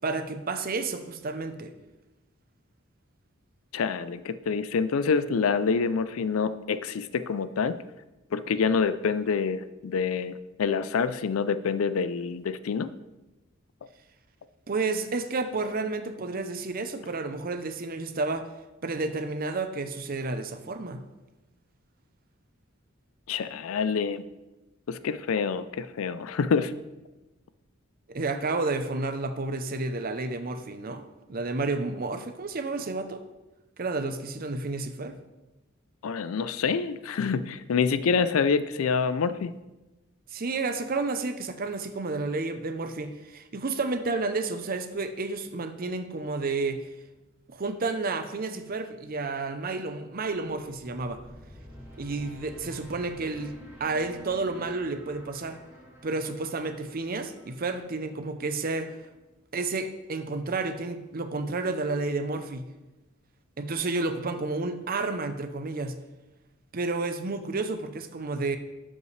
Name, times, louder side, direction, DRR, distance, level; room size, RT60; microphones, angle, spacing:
voice 1, 0.0-1.7 14.7-18.5 18.8-21.0 28.1-33.2 33.8-35.2 40.3-46.8 47.5-51.2 52.0-53.5 53.8-55.6 56.0-59.0 59.5-62.7 63.6-66.0 66.7-68.6, right 3 dB, 45° right, 9 dB, 0.6 m, -31 dB
voice 2, 3.7-7.8 8.3-12.9 23.3-24.2 24.9-26.8 36.0-39.5, left 5 dB, 85° left, 14 dB, 0.4 m, -27 dB
sound 1, 50.2-59.3, equal, 10° right, 1.9 m, -49 dB
12.0 x 5.4 x 3.2 m, 1.1 s
head